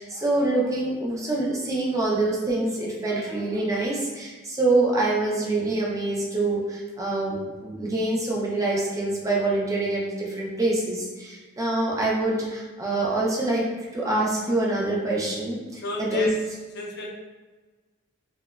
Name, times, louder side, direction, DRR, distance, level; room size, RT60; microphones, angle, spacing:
voice 1, 0.0-13.6 13.9-16.3, right 2 dB, 15° right, -4 dB, 0.4 m, -25 dB
voice 2, 15.8-16.3 16.7-17.1, equal, 50° left, -1 dB, 0.4 m, -31 dB
2.8 x 2.0 x 2.3 m, 1.3 s
head